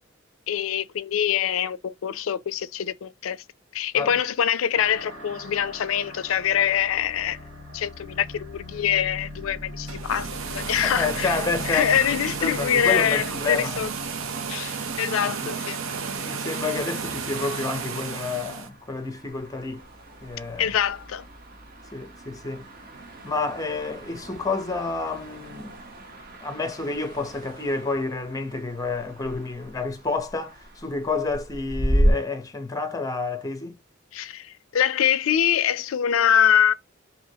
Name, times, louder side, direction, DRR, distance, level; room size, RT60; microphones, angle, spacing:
voice 1, 0.5-3.4 3.7-7.4 7.7-11.4 11.7-13.9 14.5-15.8 20.6-21.2 34.1-36.7, left 9 dB, 85° left, 0.4 m, -24 dB
sound 1, 4.7-15.7, left 1 dB, 65° right, 1.6 m, -42 dB
sound 2, 9.8-18.7, right 5 dB, 85° right, 0.7 m, -32 dB
voice 2, 10.8-13.8 15.2-15.5 16.2-19.8 20.2-20.8 21.9-22.7 23.2-25.8 26.4-33.8, left 3 dB, 15° left, 0.6 m, -29 dB
sound 3, 17.0-32.1, equal, 45° right, 0.9 m, -33 dB
4.2 x 2.8 x 2.7 m
head